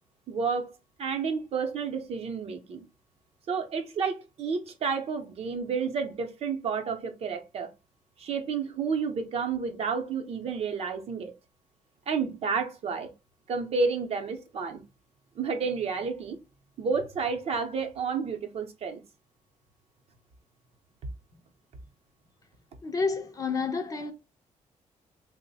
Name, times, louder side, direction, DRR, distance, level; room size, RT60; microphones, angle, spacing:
voice 1, 0.3-0.7 1.0-2.8 3.5-7.7 8.2-11.3 12.1-13.1 13.5-14.8 15.4-16.4 16.8-19.0, right 5 dB, 50° right, 0.6 m, -30 dB
voice 2, 22.8-24.1, left 4 dB, 25° left, 0.4 m, -29 dB
3.1 x 2.1 x 4.0 m
cardioid pair, 175°, 14 cm